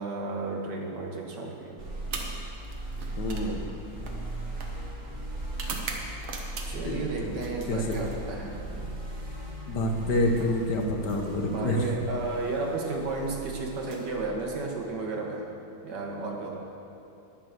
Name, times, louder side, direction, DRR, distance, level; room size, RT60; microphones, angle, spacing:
voice 1, 0.0-1.8 6.7-8.9 11.5-15.5 15.8-16.6, right 3 dB, 60° right, 0 dB, 1.9 m, -33 dB
sound 1, 1.8-14.3, right 1 dB, 40° right, 1.9 m, -38 dB
sound 2, 2.0-7.0 7.3-8.6 9.8-11.6 12.7-12.9 13.7-14.9, right 4 dB, 85° right, 2.0 m, -42 dB
voice 2, 3.2-3.7 6.8-7.4 7.7-8.0 9.7-11.8, left 1 dB, 60° left, 2 dB, 1.7 m, -28 dB
10.0 x 9.3 x 6.6 m, 2.8 s
omnidirectional pair, 2.1 m